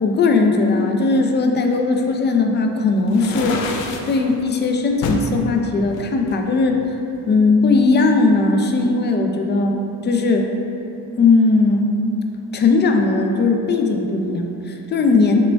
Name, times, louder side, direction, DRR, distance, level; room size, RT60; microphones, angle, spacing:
voice 1, 0.0-3.6 4.1-6.8 7.2-9.8 10.0-10.5 11.2-11.9 12.5-15.5, left 3 dB, 25° left, 3 dB, 0.3 m, -18 dB
sound 1, 3.1-4.2 5.0-5.3 5.9-7.0, left 4 dB, 80° left, 0.5 m, -27 dB
5.1 x 2.2 x 3.3 m, 2.9 s
supercardioid pair, 65°, 45 cm